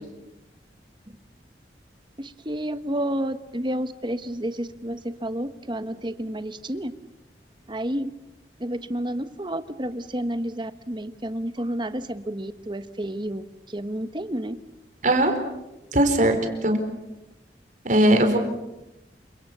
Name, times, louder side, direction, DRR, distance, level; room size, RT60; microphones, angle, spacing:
voice 1, 2.2-6.9 7.7-8.1 8.6-13.4 13.7-14.6, right 1 dB, 25° right, 11 dB, 1.3 m, -30 dB
voice 2, 15.9-16.4 16.6-16.8 17.8-18.4, right 1 dB, 45° right, 6 dB, 4.4 m, -19 dB
29.0 x 26.0 x 6.9 m, 0.94 s
head